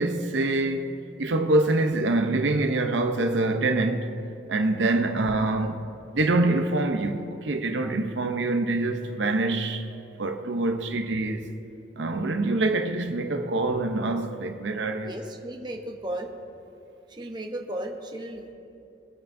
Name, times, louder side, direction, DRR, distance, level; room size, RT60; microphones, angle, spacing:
voice 1, 0.0-4.1 4.5-5.9 6.1-9.8 10.2-11.4 12.0-15.1, right 2 dB, 85° right, 0.7 m, -25 dB
voice 2, 15.1-16.3 17.1-18.5, right 1 dB, 25° right, 0.8 m, -35 dB
21.0 x 9.0 x 2.6 m
head